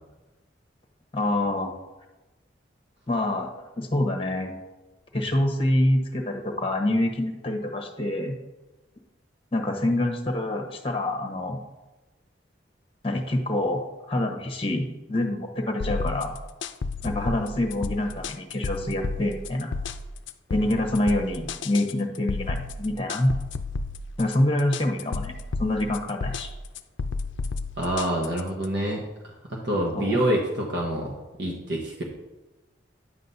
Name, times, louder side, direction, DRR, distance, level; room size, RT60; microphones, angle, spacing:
voice 1, 1.1-1.7 3.1-4.5 5.1-8.4 9.5-11.6 13.0-16.3 17.0-19.7 20.5-23.3 24.2-25.3 25.6-26.5 29.9-30.2, left 1 dB, 30° left, 3 dB, 1.1 m, -26 dB
sound 1, 15.8-28.7, left 3 dB, 80° left, 0.5 m, -32 dB
voice 2, 27.8-32.0, right 1 dB, 60° right, -3 dB, 1.2 m, -27 dB
9.9 x 7.5 x 2.7 m, 1.1 s
head